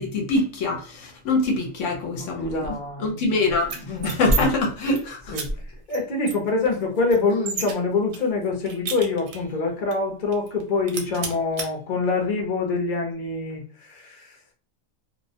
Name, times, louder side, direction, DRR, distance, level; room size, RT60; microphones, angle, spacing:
voice 1, 0.0-2.7 3.0-5.4, left 2 dB, 70° left, 0.9 m, -24 dB
voice 2, 2.4-3.3 3.9-4.1 5.3-5.5 5.9-14.3, left 3 dB, 45° left, 0.6 m, -25 dB
sound 1, 3.6-4.4 4.7-5.0 5.3-5.5 5.9-6.0 6.3-7.7 8.1-9.5 9.9-10.0 10.3-10.6 10.9-11.7, right 5 dB, 80° right, 1.0 m, -32 dB
2.3 x 2.0 x 2.6 m
omnidirectional pair, 1.4 m